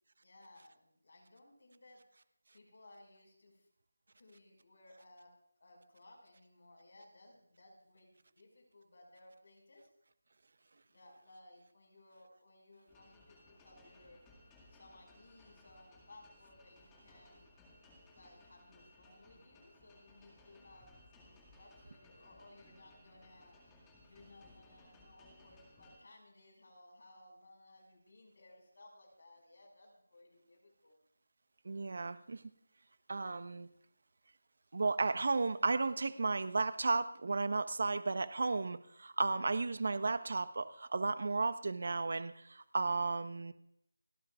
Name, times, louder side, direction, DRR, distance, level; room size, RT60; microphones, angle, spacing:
voice 1, 0.2-2.0 2.5-3.6 4.2-5.3 5.6-9.9 10.9-14.2 14.7-17.6 18.1-20.9 21.2-23.6 24.0-31.0, left 1 dB, 60° left, 1 dB, 5.8 m, -60 dB
sound 1, 12.9-26.0, left 1 dB, 10° left, 2.1 m, -62 dB
voice 2, 31.6-32.4 33.1-33.7 34.7-43.5, right 3 dB, 55° right, 12 dB, 1.1 m, -34 dB
29.5 x 12.0 x 2.5 m, 0.70 s
figure-of-eight pair, 170°, 0 cm